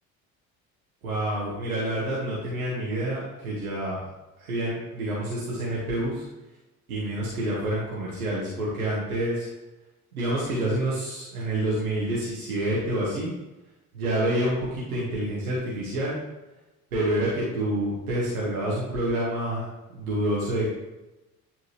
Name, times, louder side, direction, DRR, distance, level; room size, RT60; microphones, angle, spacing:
voice 1, 1.0-4.0 4.4-6.3 6.9-9.5 10.1-13.3 13.9-16.2 16.9-20.6, right 1 dB, 75° right, -7 dB, 1.7 m, -28 dB
10.0 x 4.5 x 3.3 m, 1.0 s
figure-of-eight pair, 55°, 43 cm